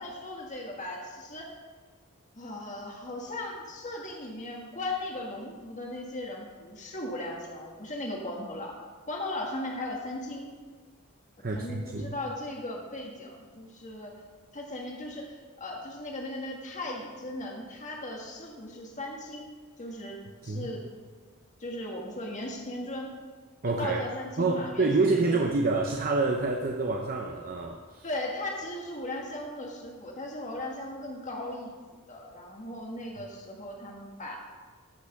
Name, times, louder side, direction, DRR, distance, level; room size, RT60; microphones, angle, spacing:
voice 1, 0.0-1.5 2.3-8.7 9.1-10.5 11.5-14.1 14.5-19.5 19.8-20.2 20.4-20.8 21.6-23.1 23.6-25.4 28.0-31.7 32.1-34.4, left 1 dB, 35° left, 0 dB, 1.5 m, -37 dB
voice 2, 11.4-12.2 20.4-20.7 23.6-24.1 24.4-28.1, right 3 dB, 45° right, 1 dB, 0.8 m, -27 dB
14.5 x 6.0 x 5.9 m, 1.5 s
head